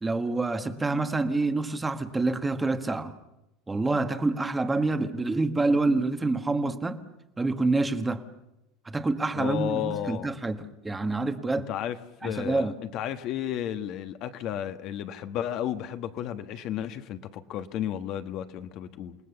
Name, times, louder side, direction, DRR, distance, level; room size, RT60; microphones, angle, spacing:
voice 1, 0.0-3.1 3.7-7.0 7.4-8.2 8.8-11.7 12.2-12.8, right 3 dB, 10° right, 1.3 m, -27 dB
voice 2, 9.4-10.3 11.7-19.2, left 10 dB, 45° left, 1.3 m, -33 dB
29.0 x 18.5 x 7.0 m
supercardioid pair, 150°, 0 cm